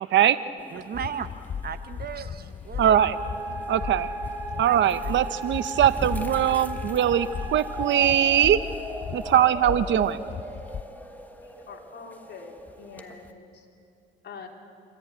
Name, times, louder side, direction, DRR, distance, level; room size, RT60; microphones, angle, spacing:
sound 1, 0.6-13.3, equal, 10° left, 1.5 m, -44 dB
voice 1, 0.7-1.3 1.6-3.1 4.6-5.4, right 7 dB, 50° right, 11 dB, 1.1 m, -36 dB
sound 2, 0.9-10.8, left 7 dB, 35° left, 0.5 m, -37 dB
voice 2, 2.8-3.2 3.7-4.1 4.6-8.6 9.1-10.2, right 10 dB, 70° right, 13 dB, 0.9 m, -21 dB
sound 3, 3.1-13.1, right 3 dB, 10° right, 2.4 m, -37 dB
voice 3, 11.7-13.5 14.2-14.5, left 5 dB, 60° left, 0 dB, 3.7 m, -43 dB
27.0 x 14.0 x 9.2 m, 2.5 s
cardioid pair, 90°, 20 cm